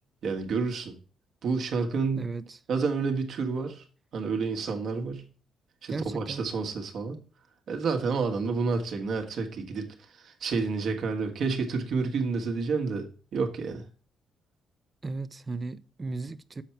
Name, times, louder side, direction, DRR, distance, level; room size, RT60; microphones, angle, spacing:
voice 1, 0.2-0.9 1.4-2.3 2.7-3.8 4.1-5.3 5.8-7.2 7.7-13.1 13.3-13.8, right 4 dB, 65° right, 1.4 m, -29 dB
voice 2, 2.2-2.6 5.9-6.4 15.0-16.6, right 3 dB, 30° right, 0.5 m, -35 dB
7.2 x 4.5 x 5.7 m
cardioid pair, 90°, 0 cm